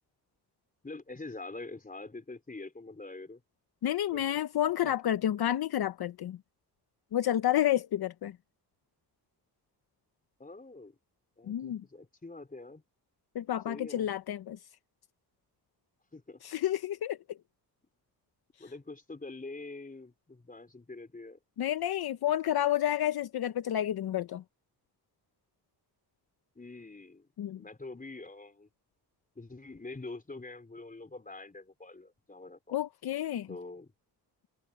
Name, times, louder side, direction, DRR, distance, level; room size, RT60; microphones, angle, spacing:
voice 1, 0.8-3.4 4.1-4.3 4.8-4.9 10.4-11.0 11.4-12.8 13.7-14.1 16.1-16.4 18.6-21.4 26.5-27.3 27.6-28.7 29.4-32.8 33.5-33.9, left 3 dB, 20° left, 4.4 m, -45 dB
voice 2, 3.8-6.4 7.1-8.4 11.5-11.8 13.3-14.6 16.4-17.2 21.6-24.4 27.4-27.6 32.7-33.5, left 12 dB, 65° left, 0.8 m, -30 dB
cardioid pair, 95°, 40 cm